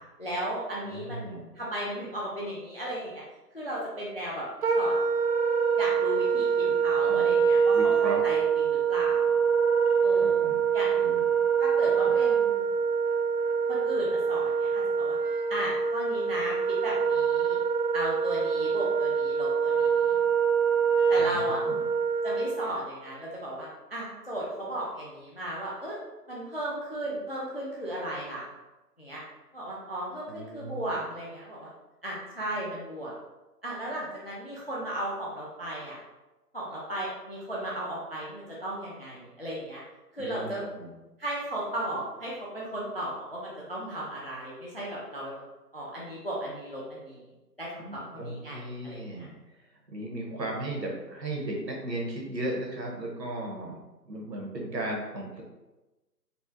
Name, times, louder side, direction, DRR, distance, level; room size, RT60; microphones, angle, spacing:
voice 1, 0.2-3.2 3.5-4.5 4.7-5.0 5.8-9.3 10.0-10.4 10.7-10.9 11.6-12.7 13.7-15.2 15.5-17.6 17.9-20.2 21.1-21.6 22.2-26.0 26.3-28.5 29.0-29.2 29.5-31.7 32.0-33.1 33.6-36.0 36.5-39.8 40.1-40.6 41.2-45.4 45.7-47.3 47.6-49.3, right 1 dB, 40° left, -6 dB, 0.4 m, -35 dB
voice 2, 0.8-1.4 6.6-6.7 7.1-7.4 7.7-8.2 10.2-10.6 11.0-11.2 12.0-12.1 21.2-21.4 21.7-21.8 30.3-31.1 40.2-40.9 47.8-49.3 49.9-53.8 54.0-55.4, right 1 dB, 90° right, -1 dB, 1.1 m, -36 dB
Wind instrument woodwind instrument, 4.6-22.7, right 6 dB, 70° right, 0.6 m, -25 dB
4.1 x 2.1 x 2.7 m, 1.1 s
figure-of-eight pair, 150°, 49 cm